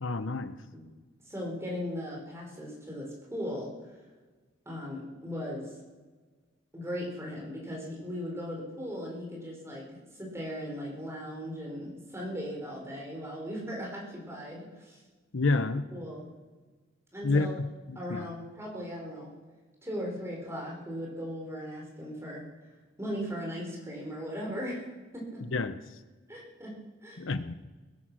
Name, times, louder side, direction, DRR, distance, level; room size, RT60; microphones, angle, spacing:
voice 1, 0.0-0.6 15.3-15.8 17.2-17.5 17.9-18.3 25.5-25.8 27.2-27.5, left 3 dB, 75° left, 12 dB, 0.8 m, -28 dB
voice 2, 1.2-3.7 4.6-5.8 6.7-15.0 15.5-15.6 15.9-16.3 17.1-17.5 17.9-19.3 19.8-22.5 23.0-24.9 25.1-25.4 26.3-27.2, equal, 15° right, -2 dB, 4.7 m, -38 dB
21.0 x 10.5 x 6.1 m, 1.3 s
head